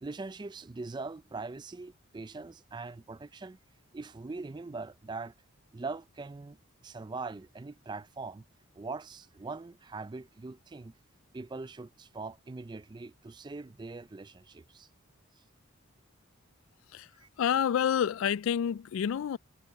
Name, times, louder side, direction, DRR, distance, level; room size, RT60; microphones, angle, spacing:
voice 1, 0.0-3.6 3.9-5.3 5.7-6.6 6.8-8.4 8.8-10.9 11.3-14.9 17.2-17.3, right 3 dB, 20° right, 0.4 m, -41 dB
voice 2, 17.4-19.4, left 8 dB, 70° left, 0.3 m, -28 dB
head